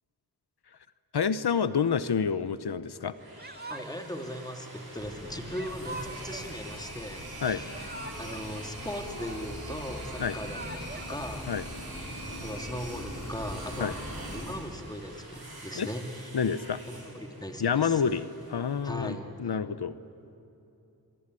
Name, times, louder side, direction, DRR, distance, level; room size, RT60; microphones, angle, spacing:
voice 1, 1.1-3.1 7.4-7.6 10.2-10.4 11.5-11.6 13.8-13.9 15.7-15.9 16.3-16.8 17.6-19.9, left 6 dB, 90° left, 14 dB, 0.8 m, -28 dB
sound 1, 3.0-18.9, right 2 dB, 70° right, 6.1 m, -45 dB
Yell / Crying sobbing, 3.4-4.2 5.5-6.5 7.5-8.5 8.7-9.7 10.3-11.2, right 2 dB, 25° right, 1.5 m, -43 dB
voice 2, 3.7-7.8 8.2-11.5 12.3-14.0 14.3-16.3 16.9-18.0 18.8-19.2, equal, 10° left, 4 dB, 2.8 m, -38 dB
sound 2, 5.0-14.5, left 1 dB, 50° left, 6.7 m, -43 dB
26.5 x 23.0 x 9.8 m, 2.9 s
wide cardioid pair, 45°, 38 cm